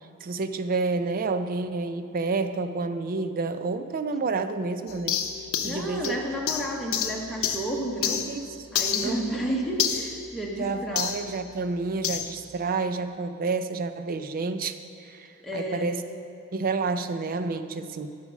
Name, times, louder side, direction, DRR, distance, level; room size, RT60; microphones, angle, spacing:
voice 1, 0.2-5.2 5.6-6.1 8.1-8.6 9.0-9.2 10.6-16.0 16.5-18.1, right 3 dB, 40° right, 10 dB, 0.4 m, -29 dB
sound 1, 4.9-8.4 8.8-11.2 12.0-12.3, left 8 dB, 65° left, 0.7 m, -30 dB
voice 2, 5.6-8.2 8.7-11.0 15.4-15.9, right 1 dB, ahead, -3 dB, 1.0 m, -31 dB
11.5 x 5.1 x 6.2 m, 2.6 s
head